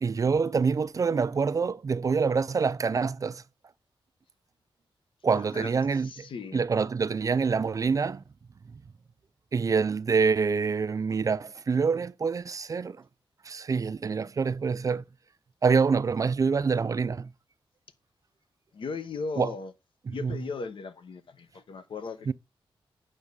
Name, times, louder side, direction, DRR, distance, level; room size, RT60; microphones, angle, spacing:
voice 1, 0.0-3.4 5.2-8.2 9.5-13.0 13.4-15.0 15.6-17.3 19.4-19.5 20.1-20.4 22.3-22.4, right 5 dB, 40° right, 0.4 m, -26 dB
voice 2, 5.3-5.7 6.0-6.6 18.7-19.7 20.1-22.3, left 4 dB, 70° left, 0.9 m, -37 dB
8.8 x 3.6 x 6.6 m
wide cardioid pair, 140°, 9 cm